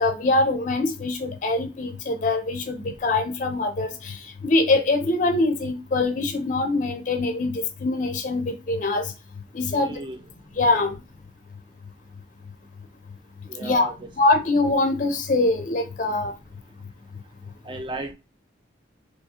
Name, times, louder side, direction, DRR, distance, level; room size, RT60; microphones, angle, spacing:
voice 1, 0.0-9.1 9.5-9.9 10.6-10.9 13.6-13.9 14.2-16.3, left 2 dB, 45° left, 0.4 m, -23 dB
voice 2, 9.7-10.2 13.5-14.1 17.6-18.1, right 2 dB, 25° right, 0.3 m, -35 dB
3.6 x 2.8 x 2.7 m
head